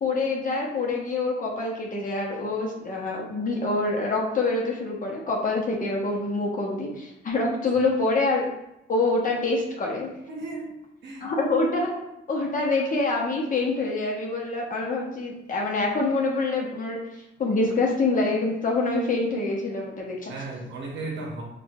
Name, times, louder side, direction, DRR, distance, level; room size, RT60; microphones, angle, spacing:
voice 1, 0.0-8.5 8.9-10.1 11.2-11.9 12.3-17.0 17.4-20.3, left 3 dB, 40° left, -2 dB, 0.8 m, -26 dB
voice 2, 10.3-10.7 11.0-11.3 20.3-21.4, right 3 dB, 65° right, -1 dB, 0.7 m, -35 dB
4.3 x 2.4 x 2.3 m, 0.86 s
cardioid pair, 90°, 20 cm